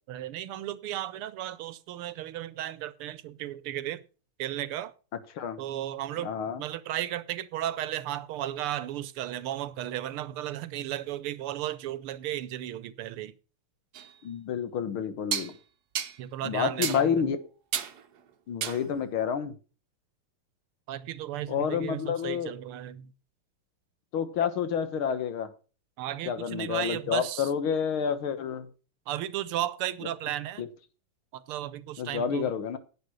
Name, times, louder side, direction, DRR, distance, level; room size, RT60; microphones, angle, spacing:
voice 1, 0.1-4.0 4.4-4.9 5.6-6.3 6.6-13.4 16.2-17.3 20.9-23.1 26.0-27.5 29.1-30.6 31.3-32.5, right 12 dB, 80° right, 1.7 m, -34 dB
voice 2, 6.2-6.6 14.2-15.6 16.4-17.4 18.5-19.6 21.5-22.5 24.1-25.5 26.3-28.7 30.6-30.7 32.0-32.8, left 7 dB, 70° left, 2.0 m, -29 dB
sound 1, 13.9-14.1 15.3-15.5 16.0-16.2 16.8-17.0 17.7-18.0 18.6-18.9, right 9 dB, 55° right, 1.3 m, -31 dB
10.5 x 8.5 x 6.2 m
omnidirectional pair, 2.4 m